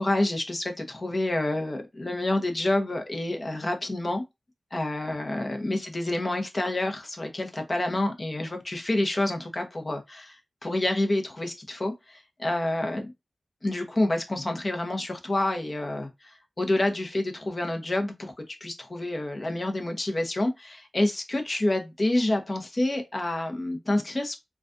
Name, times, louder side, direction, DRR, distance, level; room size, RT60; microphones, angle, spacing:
voice 1, 0.0-4.2 4.7-13.1 13.6-24.4, left 1 dB, 35° left, 0.9 m, -28 dB
3.9 x 2.4 x 2.5 m
wide cardioid pair, 95°, 0 cm